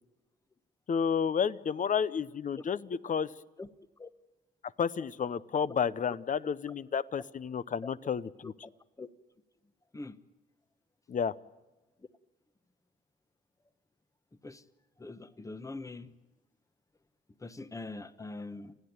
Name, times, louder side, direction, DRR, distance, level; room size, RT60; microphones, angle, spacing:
voice 1, 0.9-3.3 4.8-8.5 11.1-11.3, left 7 dB, 40° left, 0.7 m, -31 dB
voice 2, 15.0-16.1 17.4-18.7, left 3 dB, 15° left, 1.0 m, -42 dB
29.5 x 10.5 x 9.5 m
cardioid pair, 90°, 20 cm